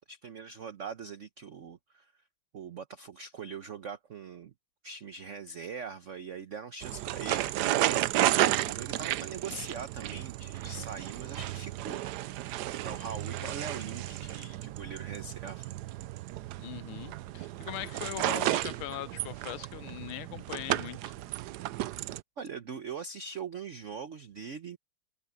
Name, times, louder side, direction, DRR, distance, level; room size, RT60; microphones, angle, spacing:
voice 1, 0.1-2.1 2.5-4.5 4.8-7.5 8.5-12.0 12.8-15.8 22.4-24.8, right 5 dB, 55° right, 0.9 m, -42 dB
sound 1, 6.8-22.2, right 14 dB, 75° right, 0.9 m, -33 dB
voice 2, 16.6-21.1, left 14 dB, 90° left, 1.6 m, -41 dB
omnidirectional pair, 2.3 m